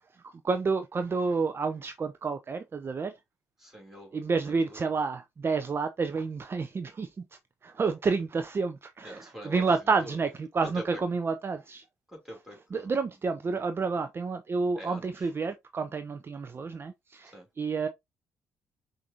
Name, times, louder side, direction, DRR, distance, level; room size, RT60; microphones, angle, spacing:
voice 1, 0.2-3.1 4.1-7.2 7.6-11.8 12.7-17.9, right 4 dB, 30° right, 0.5 m, -30 dB
voice 2, 3.6-4.2 4.7-4.8 9.0-10.1 10.6-10.8 12.1-12.9 14.8-15.3 17.3-17.5, equal, 5° right, 2.6 m, -44 dB
5.8 x 2.6 x 2.8 m
hypercardioid pair, 50°, 8 cm